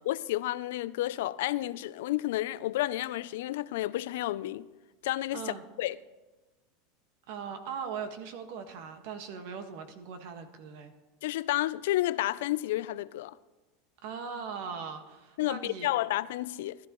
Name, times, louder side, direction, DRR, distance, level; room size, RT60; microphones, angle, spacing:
voice 1, 0.1-4.7 5.0-6.0 11.2-13.4 15.4-16.8, left 15 dB, 75° left, 0.4 m, -31 dB
voice 2, 5.3-5.6 7.3-10.9 14.0-15.9, right 6 dB, 60° right, 1.5 m, -40 dB
19.0 x 12.5 x 3.1 m
supercardioid pair, 150°, 0 cm